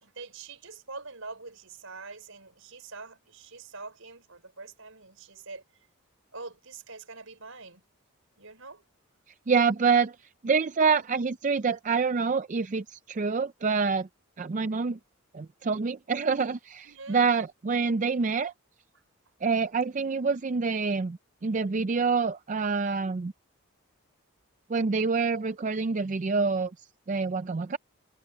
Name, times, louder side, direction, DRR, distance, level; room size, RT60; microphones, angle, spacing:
voice 1, 0.0-5.6 6.3-7.8 8.4-8.8 16.8-17.2, right 3 dB, 70° right, 5.9 m, -44 dB
voice 2, 9.5-10.1 10.4-14.1 14.4-15.0 15.3-18.5 19.4-23.3 24.7-26.7 27.1-27.8, right 5 dB, 35° right, 0.4 m, -26 dB
head